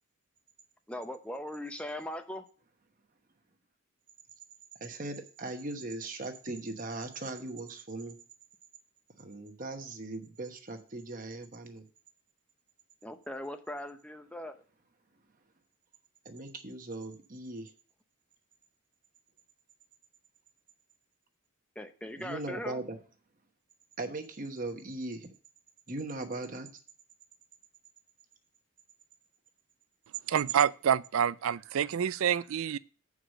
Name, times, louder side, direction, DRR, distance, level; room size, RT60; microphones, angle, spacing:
voice 1, 0.9-2.4 13.0-14.6 21.8-22.8, left 1 dB, 5° left, 0.7 m, -39 dB
voice 2, 4.8-8.2 9.2-11.8 16.2-17.7 22.2-23.0 24.0-25.3 25.9-26.7, right 2 dB, 40° right, 1.1 m, -39 dB
voice 3, 30.3-32.8, right 8 dB, 75° right, 0.4 m, -27 dB
8.1 x 4.8 x 6.4 m
head